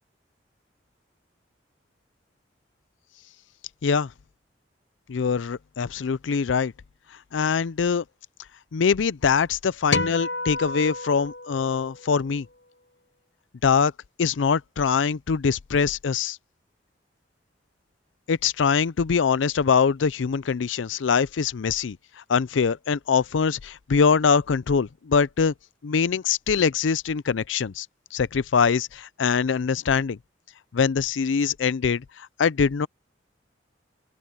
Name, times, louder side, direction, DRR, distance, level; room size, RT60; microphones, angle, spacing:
voice 1, 5.1-6.7 7.3-8.0 8.7-12.5 13.6-13.9 14.2-16.4 18.3-22.0 22.3-25.5 25.8-27.9 28.1-30.2 30.7-32.9, left 6 dB, 85° left, 0.5 m, -23 dB
sound 1, 9.9-12.4, left 3 dB, 70° left, 1.0 m, -30 dB
open air
head